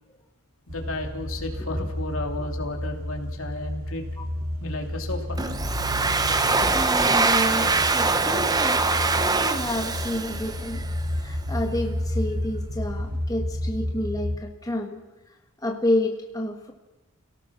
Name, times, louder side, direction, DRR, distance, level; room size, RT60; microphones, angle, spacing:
voice 1, 0.7-4.0 4.6-5.5 7.6-7.7, left 2 dB, 70° left, 3 dB, 3.0 m, -33 dB
sound 1, 0.7-14.4, left 1 dB, 85° right, 2.6 m, -31 dB
Domestic sounds home sounds, 5.4-11.0, right 3 dB, 15° right, 0.8 m, -23 dB
voice 2, 6.7-10.9 11.2-15.0 15.6-16.7, left 1 dB, 15° left, 2 dB, 1.5 m, -29 dB
30.0 x 17.5 x 6.2 m, 1.1 s
head